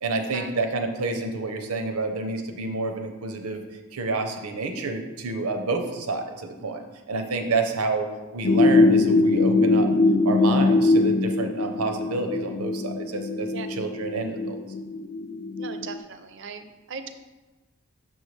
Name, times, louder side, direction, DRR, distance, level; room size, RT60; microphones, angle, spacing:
voice 1, 0.0-3.6 3.9-8.1 8.3-9.9 10.2-14.6, right 3 dB, 90° right, 6 dB, 0.7 m, -29 dB
sound 1, 8.4-16.0, left 2 dB, 65° left, 0.5 m, -22 dB
voice 2, 15.6-17.1, right 5 dB, 55° right, 9 dB, 0.5 m, -38 dB
6.5 x 5.4 x 3.2 m, 1.2 s
head